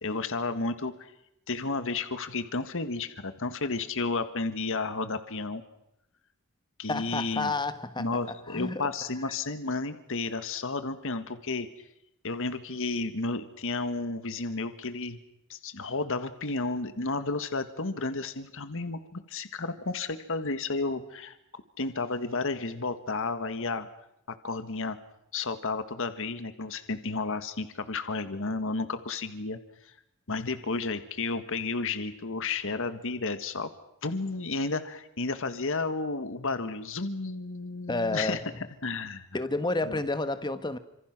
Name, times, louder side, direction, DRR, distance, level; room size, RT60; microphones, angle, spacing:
voice 1, 0.0-1.1 1.5-5.6 6.8-7.5 8.0-11.7 12.2-15.2 15.5-21.3 21.8-23.9 24.3-25.0 25.3-29.6 29.8-29.9 30.3-33.7 34.0-38.4 38.8-39.2 39.9-40.0, left 3 dB, 65° left, 1.7 m, -32 dB
voice 2, 6.9-8.2 8.5-8.8 37.9-38.5 39.3-40.8, left 2 dB, 20° left, 1.3 m, -30 dB
29.0 x 26.5 x 6.1 m
head